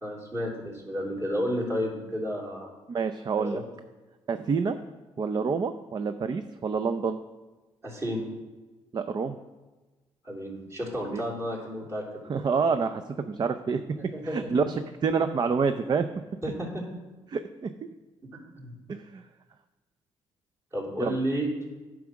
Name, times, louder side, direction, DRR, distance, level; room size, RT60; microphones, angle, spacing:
voice 1, 0.0-2.7 3.4-3.6 7.8-8.2 10.2-12.4 14.1-14.4 16.4-16.8 18.6-18.7 20.7-21.5, equal, 25° right, -4 dB, 3.2 m, -31 dB
voice 2, 2.9-3.6 4.3-4.8 5.2-7.2 8.9-9.4 11.1-11.2 12.3-13.8 14.2-16.1 17.3-17.7 18.9-19.2 21.0-21.1, right 5 dB, 40° right, 9 dB, 0.5 m, -27 dB
9.2 x 4.8 x 6.2 m, 1.2 s
cardioid pair, 80°, 11 cm